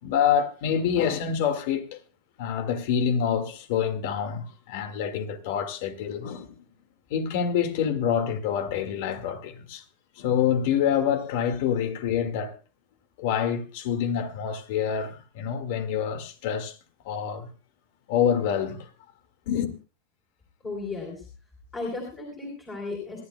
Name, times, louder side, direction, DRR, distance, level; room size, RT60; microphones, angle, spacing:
voice 1, 0.0-2.0 2.4-6.6 7.1-9.8 10.2-12.5 13.2-16.8 17.1-17.5 18.1-18.9 19.5-19.7, left 8 dB, 55° left, 1.8 m, -26 dB
voice 2, 20.6-21.2 21.7-23.2, left 3 dB, 15° left, 3.5 m, -34 dB
26.5 x 11.5 x 2.2 m
supercardioid pair, 160°, 0 cm